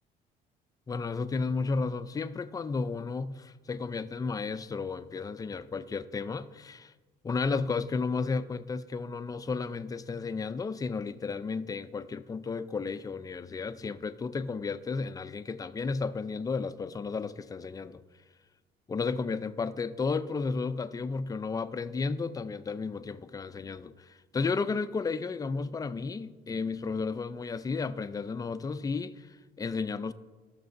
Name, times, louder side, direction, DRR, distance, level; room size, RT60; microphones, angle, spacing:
voice 1, 0.9-6.9 7.2-18.0 18.9-30.1, left 4 dB, 20° left, 0.4 m, -33 dB
17.5 x 6.6 x 2.6 m
cardioid pair, 110°, 17 cm